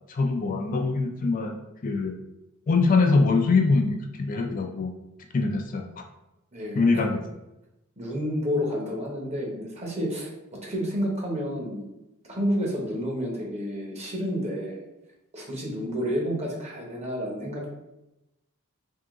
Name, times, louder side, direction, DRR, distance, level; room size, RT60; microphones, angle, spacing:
voice 1, 0.1-2.1 2.7-4.9 5.3-6.0 6.7-7.2, left 3 dB, 40° left, 3 dB, 0.4 m, -23 dB
voice 2, 6.5-6.8 8.0-10.3 10.6-11.9 12.3-14.8 15.3-17.7, equal, 30° right, -2 dB, 1.0 m, -30 dB
3.6 x 2.8 x 3.7 m, 0.93 s
head